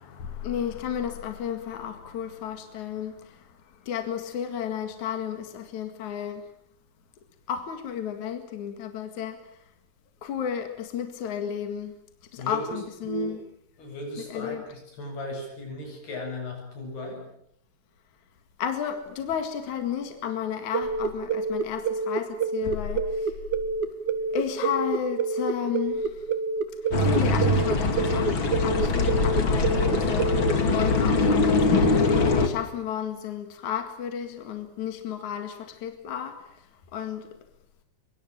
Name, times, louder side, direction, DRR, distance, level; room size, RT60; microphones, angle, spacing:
voice 1, 0.0-6.5 7.5-9.6 10.2-11.9 12.3-13.4 14.3-14.6 18.6-23.4 24.3-26.3 26.8-36.7 36.9-37.3, left 8 dB, 55° left, 7 dB, 3.0 m, -33 dB
voice 2, 12.4-13.4 13.8-17.3, equal, 75° left, 2 dB, 9.9 m, -35 dB
sound 1, 20.7-30.5, right 4 dB, 70° right, 3.3 m, -27 dB
sound 2, 26.9-32.5, left 3 dB, 35° left, 2.5 m, -22 dB
24.5 x 23.5 x 8.9 m, 0.74 s
omnidirectional pair, 4.6 m